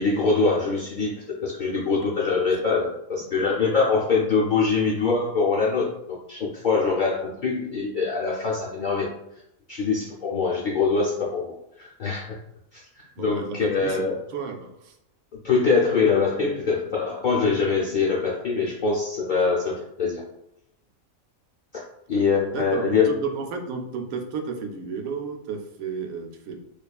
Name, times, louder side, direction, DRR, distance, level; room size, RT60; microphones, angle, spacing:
voice 1, 0.0-9.1 9.7-12.4 12.7-12.8 13.2-14.2 15.4-20.2 21.7-21.8 22.1-23.2, left 4 dB, 60° left, -5 dB, 0.5 m, -23 dB
voice 2, 13.2-14.9 22.5-26.6, right 5 dB, 85° right, 4 dB, 1.0 m, -32 dB
4.9 x 2.3 x 2.3 m, 0.82 s
omnidirectional pair, 1.4 m